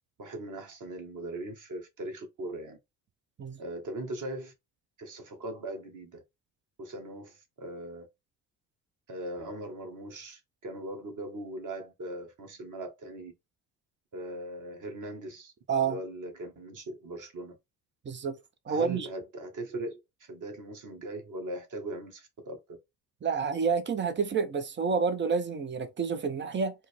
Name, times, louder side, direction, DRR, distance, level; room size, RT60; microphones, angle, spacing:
voice 1, 0.2-2.8 3.6-4.5 5.0-6.2 6.8-8.1 9.1-13.3 14.1-15.5 15.8-17.6 18.7-22.8, right 1 dB, 40° right, 1.5 m, -40 dB
voice 2, 15.7-16.0 18.0-18.4 18.7-19.1 23.2-26.7, right 5 dB, 25° right, 0.7 m, -29 dB
4.2 x 2.1 x 3.4 m
hypercardioid pair, 55°, 48 cm